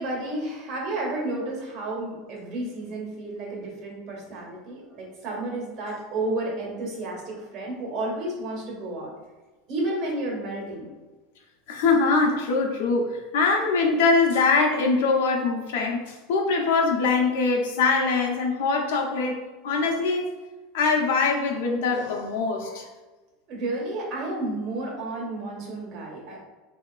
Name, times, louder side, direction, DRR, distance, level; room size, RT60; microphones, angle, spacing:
voice 1, 0.0-9.1 9.7-10.9 23.5-26.5, right 2 dB, 45° right, -2 dB, 1.4 m, -31 dB
voice 2, 11.7-20.3 20.7-22.9, left 4 dB, 80° left, 1 dB, 0.7 m, -23 dB
4.4 x 2.8 x 2.4 m, 1.2 s
supercardioid pair, 140°, 0 cm